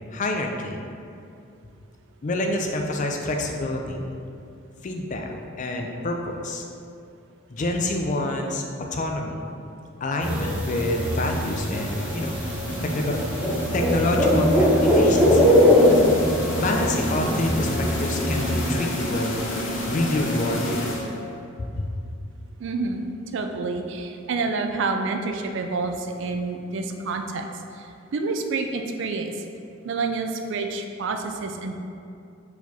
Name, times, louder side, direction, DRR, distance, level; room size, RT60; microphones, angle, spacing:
voice 1, 0.1-0.8 2.2-4.0 4.8-6.6 7.5-8.6 8.9-9.5 10.0-12.3 12.8-13.2 13.7-15.5 16.6-19.3 19.9-21.0 21.6-21.8, left 1 dB, 35° left, 2 dB, 0.4 m, -27 dB
sound 1, 10.2-18.7, left 1 dB, 5° right, 0.6 m, -21 dB
sound 2, 10.7-21.4, left 1 dB, 60° left, 0.7 m, -30 dB
voice 2, 22.6-23.1 23.3-27.5 27.8-29.3 29.8-31.7, right 3 dB, 60° right, 5 dB, 0.4 m, -28 dB
4.6 x 4.2 x 2.7 m, 2.5 s
head